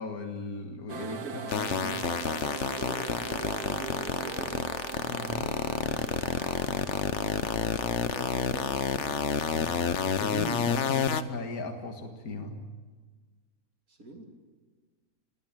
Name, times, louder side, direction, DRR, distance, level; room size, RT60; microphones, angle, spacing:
voice 1, 0.0-1.2 1.5-2.0 5.1-5.4 9.5-12.6, left 2 dB, 80° left, 5 dB, 2.2 m, -37 dB
sound 1, 0.9-11.2, right 7 dB, 85° right, 1.6 m, -42 dB
voice 2, 1.0-2.1 2.8-4.6 5.2-6.3 7.9-9.1 13.9-14.3, right 2 dB, 65° right, 2 dB, 3.5 m, -45 dB
sound 2, 1.5-11.2, left 7 dB, 55° left, 1.2 m, -29 dB
27.0 x 19.0 x 9.0 m, 1.4 s
omnidirectional pair, 1.6 m